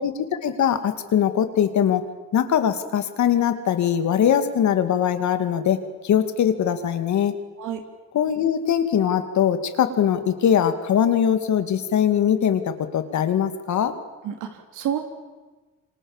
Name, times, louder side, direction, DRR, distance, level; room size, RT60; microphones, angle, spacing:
voice 1, 0.0-2.0 2.3-5.8 6.0-7.3 8.1-13.9, left 9 dB, 70° left, 9 dB, 2.4 m, -21 dB
voice 2, 14.2-15.0, right 9 dB, 90° right, 5 dB, 3.3 m, -29 dB
28.0 x 25.5 x 7.4 m, 1.3 s
cardioid pair, 90°, 30 cm